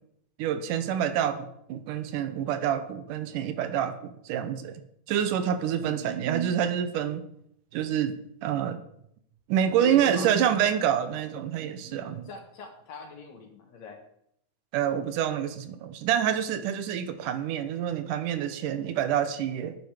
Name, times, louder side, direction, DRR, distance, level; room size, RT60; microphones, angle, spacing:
voice 1, 0.4-4.8 5.1-7.3 7.7-8.8 9.5-12.3 14.7-19.8, right 9 dB, 75° right, 10 dB, 2.3 m, -27 dB
voice 2, 5.8-6.4 9.8-10.4 11.8-14.0, left 3 dB, 60° left, 4 dB, 2.7 m, -43 dB
10.5 x 9.6 x 4.9 m, 0.74 s
omnidirectional pair, 3.8 m